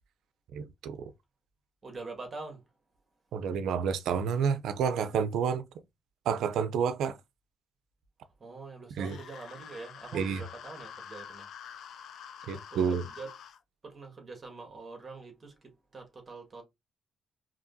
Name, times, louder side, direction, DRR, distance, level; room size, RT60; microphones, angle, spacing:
voice 1, 0.5-1.1 3.3-5.6 6.3-7.2 8.9-9.2 10.1-10.4 12.5-13.0, right 7 dB, 80° right, 0.5 m, -29 dB
voice 2, 1.8-2.6 8.4-11.5 11.7-11.8 12.5-13.3 13.8-16.6, right 3 dB, 30° right, 1.8 m, -45 dB
sound 1, 9.0-13.6, left 8 dB, 70° left, 0.6 m, -47 dB
4.9 x 2.9 x 2.7 m
cardioid pair, 90°, 0 cm